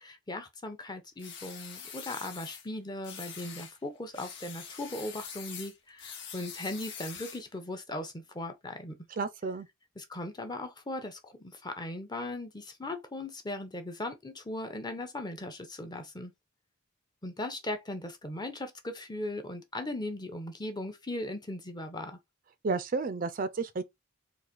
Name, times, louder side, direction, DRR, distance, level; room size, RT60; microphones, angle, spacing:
voice 1, 0.0-9.1 10.0-16.3 17.2-22.2, left 1 dB, 20° left, 0.7 m, -38 dB
sound 1, 1.2-2.7 3.0-3.8 4.1-7.5, left 7 dB, 55° left, 1.1 m, -44 dB
voice 2, 9.2-9.7 22.6-23.8, right 4 dB, 40° right, 0.4 m, -31 dB
3.9 x 2.5 x 4.4 m
head